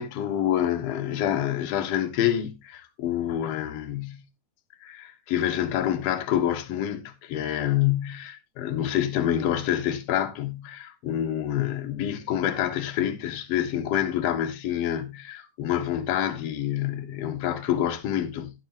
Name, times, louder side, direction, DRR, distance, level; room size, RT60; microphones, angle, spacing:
voice 1, 0.0-4.2 4.8-18.5, left 11 dB, 60° left, 2.1 m, -27 dB
16.5 x 6.8 x 2.9 m
omnidirectional pair, 3.7 m